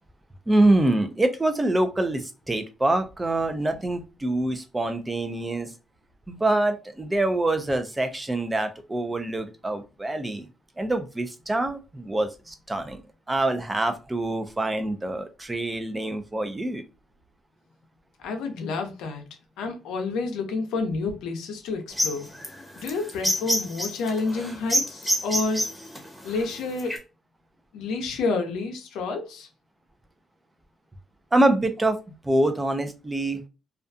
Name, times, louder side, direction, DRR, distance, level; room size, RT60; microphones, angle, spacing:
voice 1, 0.5-5.7 6.3-10.5 10.8-13.0 13.3-16.8 31.3-32.0 32.2-33.4, right 2 dB, 15° right, 0.5 m, -25 dB
voice 2, 18.2-22.3 22.8-25.6 26.2-27.0 27.7-29.5, left 3 dB, 90° left, 0.6 m, -29 dB
sound 1, 21.9-27.0, equal, ahead, 0.9 m, -27 dB
2.4 x 2.3 x 2.5 m
cardioid pair, 90°, 0 cm